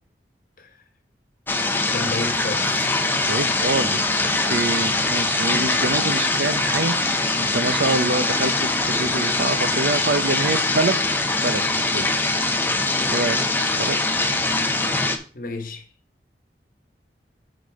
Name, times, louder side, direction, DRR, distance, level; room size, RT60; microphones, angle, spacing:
sound 1, 1.5-15.2, left 2 dB, 10° left, 0.7 m, -22 dB
voice 1, 1.9-2.9 15.3-15.9, left 2 dB, 50° left, 1.3 m, -31 dB
voice 2, 3.3-12.3 13.1-13.4 13.8-14.0, right 3 dB, 70° right, 0.8 m, -26 dB
8.3 x 3.9 x 5.2 m
head